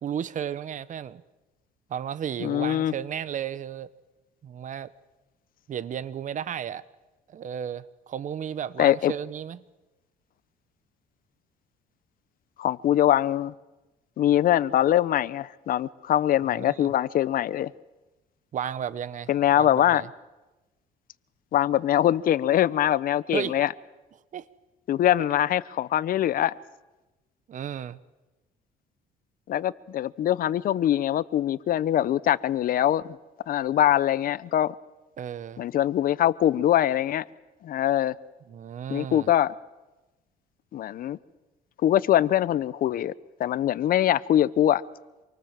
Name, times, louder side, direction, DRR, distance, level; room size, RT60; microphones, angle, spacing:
voice 1, 0.0-1.2 1.9-3.9 4.4-4.9 5.7-6.8 7.3-9.6 16.5-16.9 18.5-20.1 23.3-23.6 24.3-24.4 27.5-28.0 35.2-35.6 38.5-39.3, right 9 dB, 50° right, 1.2 m, -33 dB
voice 2, 2.4-2.9 8.8-9.1 12.6-13.5 14.2-17.7 19.3-20.0 21.5-23.7 24.9-26.5 29.5-33.0 33.5-34.7 35.6-37.2 37.6-38.1 38.9-39.5 40.7-41.2 41.8-43.1 43.4-44.8, left 12 dB, 55° left, 0.8 m, -23 dB
27.0 x 24.0 x 7.6 m
cardioid pair, 110°, 17 cm